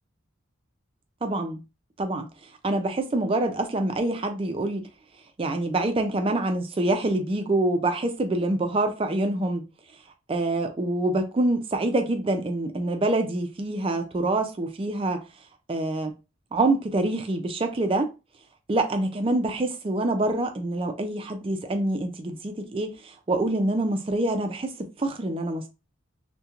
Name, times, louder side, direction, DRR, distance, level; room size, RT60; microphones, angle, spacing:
voice 1, 1.2-1.6 2.0-2.3 2.6-4.8 5.4-9.6 10.3-15.2 15.7-16.1 16.5-18.1 18.7-25.7, right 2 dB, 25° right, 0.4 m, -26 dB
2.9 x 2.2 x 2.4 m
head